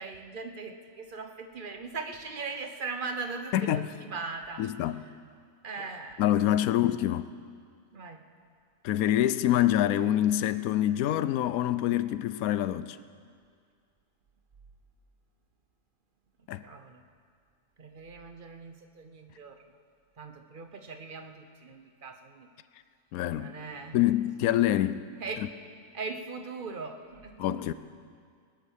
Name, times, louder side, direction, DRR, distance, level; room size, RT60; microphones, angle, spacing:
voice 1, 0.0-4.7 5.6-6.2 7.9-8.2 16.6-17.0 17.8-19.6 20.2-22.5 23.3-24.0 25.2-25.5 25.9-27.6, right 4 dB, 40° right, 1.0 m, -39 dB
voice 2, 3.5-3.9 4.6-5.0 6.2-7.3 8.8-13.0 16.5-16.6 23.1-23.5 23.9-25.0 27.4-27.7, left 12 dB, 85° left, 1.0 m, -26 dB
21.5 x 8.5 x 6.5 m
omnidirectional pair, 1.5 m